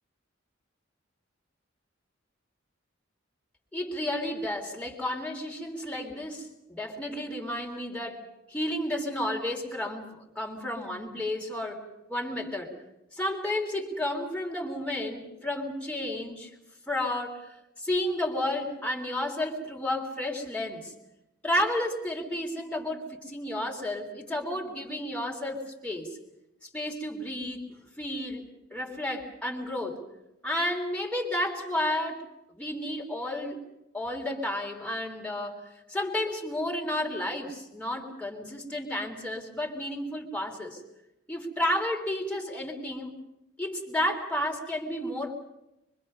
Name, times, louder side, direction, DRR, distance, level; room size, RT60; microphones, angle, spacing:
voice 1, 3.7-12.7 13.1-16.5 16.9-20.9 21.4-26.2 26.7-27.6 28.0-28.4 28.7-30.0 30.4-32.2 32.5-33.6 33.9-40.8 41.3-43.1 43.6-45.3, left 1 dB, 5° left, -1 dB, 3.5 m, -32 dB
25.0 x 24.5 x 5.5 m, 0.88 s
head